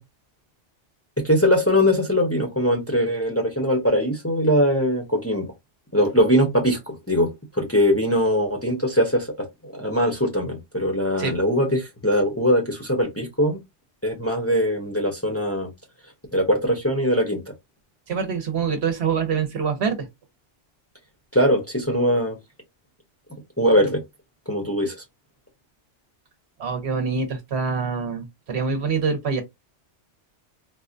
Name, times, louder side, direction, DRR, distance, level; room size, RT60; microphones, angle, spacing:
voice 1, 1.2-5.5 5.9-13.6 14.0-15.7 16.3-17.4 21.3-22.4 23.6-24.0 24.5-24.9, equal, 15° left, 0.7 m, -21 dB
voice 2, 18.1-20.1 26.6-29.4, right 5 dB, 65° right, 1.0 m, -25 dB
4.0 x 2.1 x 2.5 m
omnidirectional pair, 1.2 m